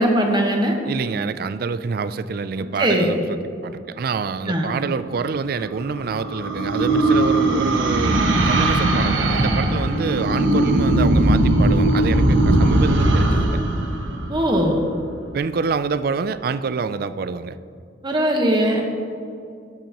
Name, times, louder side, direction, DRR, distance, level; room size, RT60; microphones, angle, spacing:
voice 1, 0.0-0.8 2.8-3.1 4.5-4.7 14.3-14.8 18.0-18.8, equal, 25° right, 1 dB, 1.2 m, -19 dB
voice 2, 0.8-13.6 15.3-17.6, right 5 dB, 50° right, 14 dB, 0.3 m, -26 dB
sound 1, 5.4-15.0, right 1 dB, 85° right, 1.1 m, -19 dB
12.5 x 9.0 x 3.0 m, 2.4 s
head